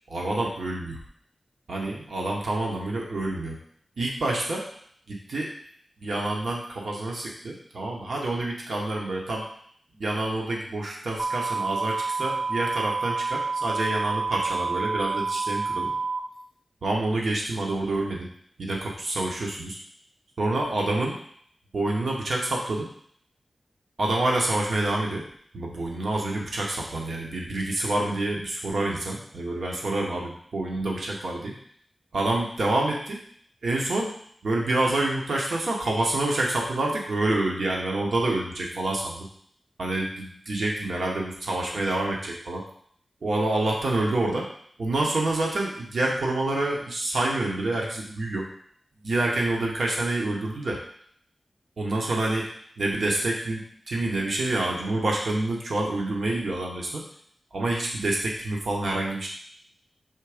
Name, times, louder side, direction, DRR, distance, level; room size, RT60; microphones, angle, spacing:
voice 1, 0.1-1.0 1.7-3.6 4.0-4.6 5.1-5.5 6.0-9.5 10.0-15.9 16.8-18.3 18.6-19.8 20.4-21.1 21.7-22.9 24.0-25.2 25.5-31.5 32.1-33.2 33.6-34.1 34.4-39.3 39.8-42.6 43.2-44.5 44.8-48.4 49.0-50.8 51.8-57.0 57.5-59.3, right 2 dB, 75° right, -1 dB, 1.1 m, -27 dB
sound 1, 11.2-16.2, right 4 dB, 50° right, 0.9 m, -28 dB
6.3 x 3.5 x 5.0 m, 0.62 s
wide cardioid pair, 110°, 0 cm